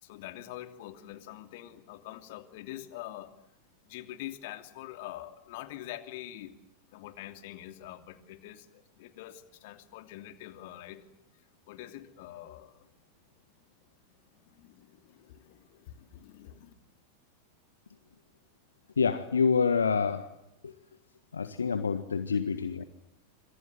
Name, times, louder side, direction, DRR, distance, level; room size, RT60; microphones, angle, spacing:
voice 1, 0.0-3.3 3.8-6.6 6.9-11.0 11.4-12.9 14.4-16.7, left 14 dB, 50° left, 9 dB, 2.9 m, -45 dB
voice 2, 19.0-20.3 20.6-20.7 21.3-22.8, left 5 dB, 70° left, 11 dB, 1.6 m, -27 dB
27.5 x 26.5 x 7.8 m, 0.83 s
figure-of-eight pair, 90°, 0 cm